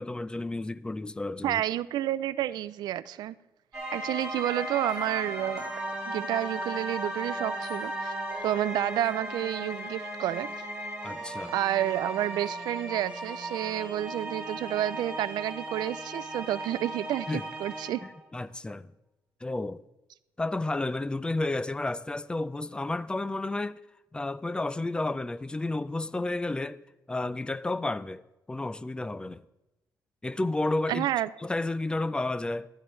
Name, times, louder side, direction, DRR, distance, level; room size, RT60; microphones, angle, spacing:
voice 1, 0.0-1.6 11.0-11.6 17.3-17.5 18.0-18.8 19.4-19.8 20.4-23.8 24.1-26.8 27.1-28.2 28.5-29.4 30.2-31.1 31.4-32.7, left 2 dB, 15° left, 0.4 m, -31 dB
voice 2, 1.4-3.3 3.9-5.7 6.1-8.1 8.4-10.5 11.5-18.0 30.9-31.3, right 13 dB, 90° right, 0.3 m, -30 dB
sound 1, 3.7-18.2, right 1 dB, 10° right, 5.1 m, -36 dB
14.5 x 12.5 x 3.1 m
cardioid pair, 120°, 7 cm